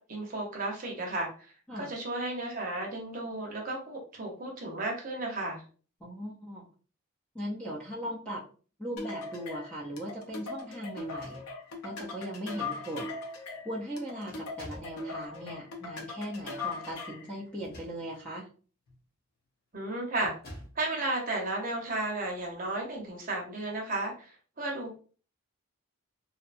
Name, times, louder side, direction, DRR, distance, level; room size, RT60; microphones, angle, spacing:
voice 1, 0.0-5.6 19.7-20.3 20.8-25.0, right 2 dB, 40° right, -1 dB, 0.7 m, -34 dB
voice 2, 6.0-6.6 7.3-8.4 8.8-11.4 11.8-13.1 13.6-18.5, equal, 5° left, -4 dB, 0.5 m, -39 dB
sound 1, 9.0-17.3, left 3 dB, 80° left, 0.6 m, -39 dB
sound 2, 11.0-11.9 12.8-12.9 13.2-13.6 14.3-15.0 17.4-18.3 18.9-19.1 20.2-20.9, equal, 45° left, 0.8 m, -49 dB
2.7 x 2.1 x 2.5 m, 0.39 s
head